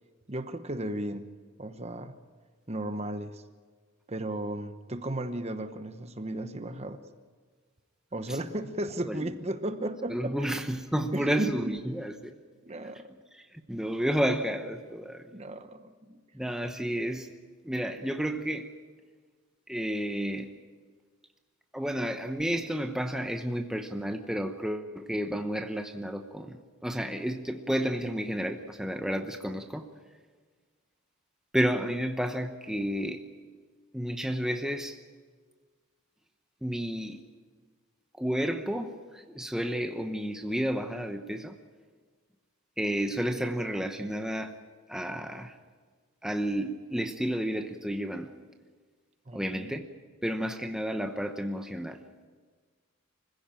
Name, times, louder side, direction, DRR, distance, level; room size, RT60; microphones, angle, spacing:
voice 1, 0.3-2.1 2.7-3.4 4.1-7.0 8.1-10.5 11.1-11.8 12.6-13.1 15.3-16.2 49.3-49.8, right 1 dB, 30° right, 9 dB, 1.0 m, -35 dB
voice 2, 10.1-12.3 13.4-15.3 16.3-17.4 17.6-18.7 19.7-20.5 21.7-29.9 31.5-33.2 33.9-35.0 36.6-37.2 38.2-41.6 42.8-44.5 44.9-45.6 46.2-48.3 49.3-49.9 50.2-52.0, equal, 5° right, 5 dB, 0.9 m, -31 dB
25.5 x 16.0 x 9.0 m, 1.5 s
head